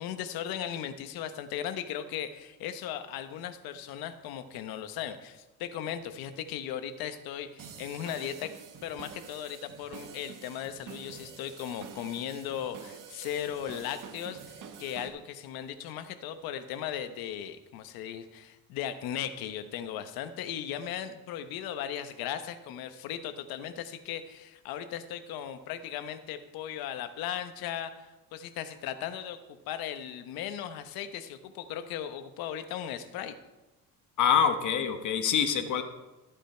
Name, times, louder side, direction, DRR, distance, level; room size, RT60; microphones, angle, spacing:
voice 1, 0.0-8.5 8.8-29.4 29.7-33.4, left 10 dB, 90° left, 10 dB, 1.1 m, -37 dB
sound 1, 7.6-15.1, right 7 dB, 65° right, 1.8 m, -47 dB
voice 2, 34.2-35.8, left 7 dB, 55° left, 7 dB, 1.5 m, -25 dB
14.0 x 8.9 x 4.4 m, 1.1 s
cardioid pair, 105°, 35 cm